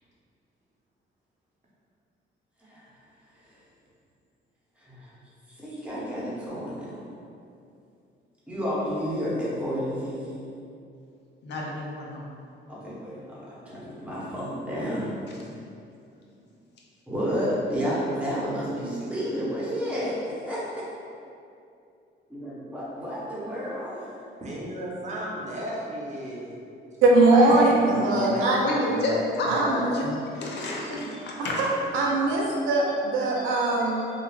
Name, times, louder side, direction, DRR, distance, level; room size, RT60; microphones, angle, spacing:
voice 1, 2.6-3.0 3.2-3.6 4.8-5.2 5.5-7.0 8.5-10.3 12.7-15.1 17.1-20.8 22.3-24.1, equal, 5° right, -8 dB, 0.9 m, -31 dB
voice 2, 11.4-12.3 28.6-31.7 32.0-32.1 32.5-32.6 33.4-34.1, left 1 dB, 60° left, -2 dB, 0.5 m, -31 dB
voice 3, 24.4-26.5 27.3-28.4 28.9-29.2, equal, 35° right, -5 dB, 0.7 m, -33 dB
voice 4, 27.0-28.6 29.5-30.0 31.6-31.7 31.9-34.0, right 2 dB, 90° right, -3 dB, 0.5 m, -21 dB
2.9 x 2.4 x 2.4 m, 2.6 s
cardioid pair, 90°, 20 cm